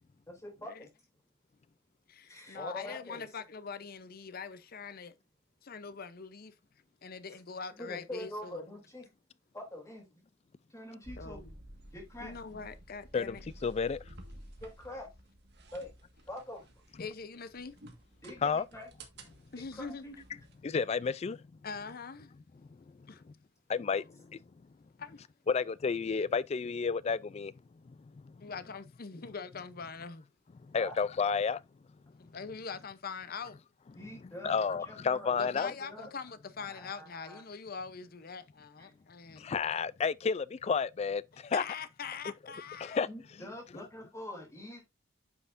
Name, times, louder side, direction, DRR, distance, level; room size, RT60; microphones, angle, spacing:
voice 1, 0.3-0.9 2.2-3.3 7.7-9.1 9.5-10.1 10.7-11.5 11.9-12.3 14.6-15.1 15.7-15.9 16.3-16.8 18.2-18.9 19.7-20.1 30.8-30.9 33.9-36.1 36.7-37.4 38.8-38.9 43.0-44.8, left 1 dB, 15° left, 3.0 m, -45 dB
voice 2, 2.1-5.1 5.6-6.5 7.0-8.6 11.2-11.6 12.2-13.4 17.0-17.8 19.5-20.1 21.6-22.3 23.1-23.2 23.9-24.0 25.0-25.2 28.4-30.3 32.2-33.6 35.4-39.5 41.4-43.0, left 5 dB, 50° left, 0.7 m, -43 dB
sound 1, 11.0-20.6, right 1 dB, 55° right, 1.7 m, -53 dB
voice 3, 13.1-14.0 18.4-18.6 20.6-21.4 23.1-23.2 23.7-24.4 25.5-27.5 27.9-28.3 30.7-31.6 34.4-35.7 39.3-41.6 42.8-43.1, left 5 dB, 30° left, 0.3 m, -31 dB
9.6 x 5.7 x 2.6 m
head